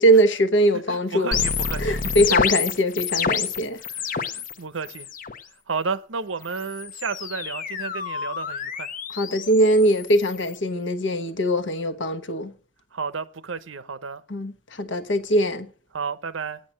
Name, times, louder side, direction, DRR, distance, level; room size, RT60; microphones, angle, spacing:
voice 1, 0.0-1.4 1.8-3.8 9.2-12.5 14.3-15.7, right 1 dB, 65° left, 1.1 m, -21 dB
voice 2, 0.7-2.2 3.8-5.1 5.7-8.9 12.9-14.2 15.9-16.6, right 5 dB, 80° right, 0.8 m, -32 dB
sound 1, 1.3-4.5 4.8-5.4 6.4-10.6, left 6 dB, 45° left, 0.8 m, -28 dB
8.7 x 7.6 x 8.7 m
head